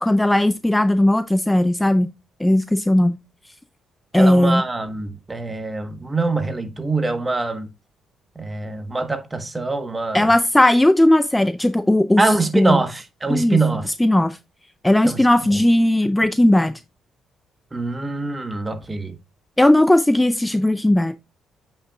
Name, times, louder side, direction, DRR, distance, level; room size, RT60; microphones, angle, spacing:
voice 1, 0.0-2.1 2.4-3.2 4.1-4.6 10.1-12.8 13.3-13.6 13.9-14.4 14.8-16.7 19.6-21.2, left 1 dB, 10° left, 0.4 m, -17 dB
voice 2, 4.1-7.7 8.4-10.3 12.2-13.9 15.0-15.3 17.7-19.1, right 3 dB, 20° right, 1.3 m, -24 dB
8.3 x 5.4 x 2.4 m
cardioid pair, 90°, 0 cm